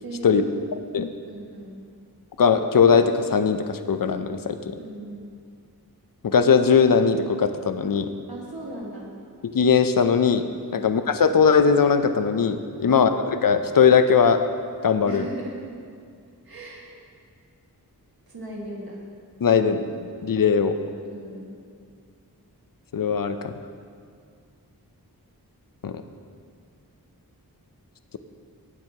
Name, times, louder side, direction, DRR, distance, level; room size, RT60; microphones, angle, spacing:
voice 1, 0.0-0.5 1.3-1.8 4.8-5.3 8.3-9.1 10.7-10.9 12.8-13.0 15.1-15.6 16.4-16.9 18.3-19.0 21.0-21.5, right 1 dB, 65° right, -3 dB, 2.0 m, -38 dB
voice 2, 2.4-4.8 6.2-8.1 9.4-14.4 14.8-15.3 19.4-19.8 20.2-20.8 22.9-23.5 25.8-26.0, left 6 dB, 60° left, 9 dB, 0.6 m, -20 dB
16.5 x 7.7 x 2.9 m, 2.2 s
wide cardioid pair, 60°, 38 cm